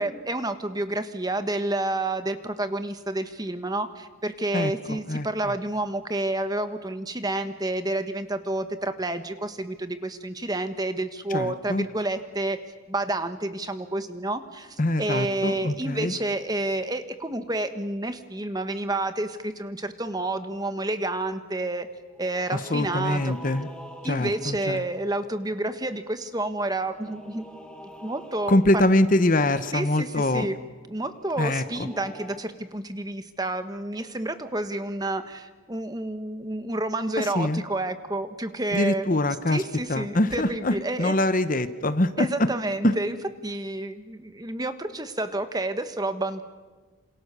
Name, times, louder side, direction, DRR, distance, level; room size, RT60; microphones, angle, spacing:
voice 1, 0.0-12.6 12.9-21.9 22.2-23.4 24.0-27.5 28.0-28.6 29.7-30.6 30.9-39.1 39.5-41.2 42.2-43.2 43.4-46.4, right 2 dB, 20° right, 9 dB, 1.2 m, -29 dB
voice 2, 4.5-5.3 11.3-11.9 14.8-16.1 22.5-23.7 24.0-24.8 28.5-30.5 31.4-31.9 37.2-37.6 38.7-39.6 39.9-42.5 42.8-42.9, left 1 dB, 40° left, 11 dB, 1.0 m, -24 dB
sound 1, 20.8-20.9 22.1-25.7 26.7-29.1 31.0-32.4, equal, 5° left, 1.9 m, -46 dB
28.0 x 27.0 x 6.9 m, 1.4 s
head